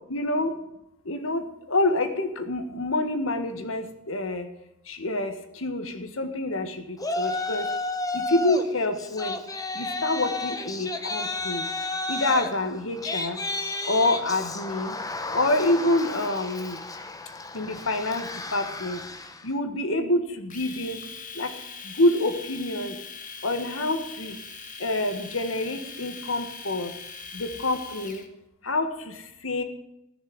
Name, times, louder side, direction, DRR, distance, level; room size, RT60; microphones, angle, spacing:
voice 1, 0.1-0.6 1.0-4.5 4.9-7.7 8.1-9.4 9.7-11.7 12.1-13.4 13.9-14.9 15.3-16.8 17.5-19.0 19.4-21.0 21.3-21.5 21.8-23.0 23.4-24.4 24.8-26.9 27.3-28.2 28.6-29.6, left 2 dB, 90° left, 8 dB, 1.6 m, -27 dB
Yell, 7.0-8.7 9.0-19.4, left 2 dB, 20° left, 1.1 m, -32 dB
Domestic sounds home sounds, 20.5-28.3, left 5 dB, 40° left, 1.5 m, -41 dB
14.5 x 6.7 x 9.6 m, 0.86 s
head